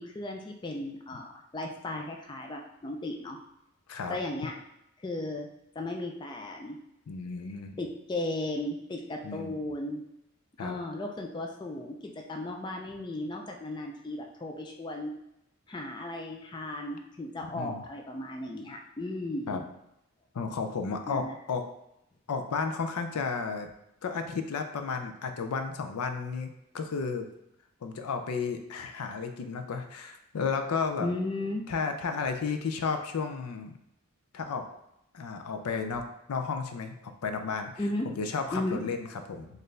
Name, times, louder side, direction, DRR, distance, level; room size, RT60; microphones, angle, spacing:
voice 1, 0.0-3.4 4.1-4.5 5.0-5.5 5.8-6.8 7.8-10.0 10.6-15.1 15.7-19.6 21.1-21.3 31.0-31.6 37.8-38.1 38.5-38.8, left 1 dB, 20° left, 1 dB, 0.3 m, -35 dB
voice 2, 7.1-7.8 9.2-9.6 10.6-10.8 17.5-17.8 19.5-19.6 20.3-21.7 22.3-23.7 24.0-27.3 27.8-31.1 31.7-33.8 34.3-34.6 35.1-36.9 37.2-37.7 38.2-39.5, left 5 dB, 85° left, 6 dB, 0.5 m, -33 dB
4.3 x 2.5 x 3.2 m, 0.82 s
head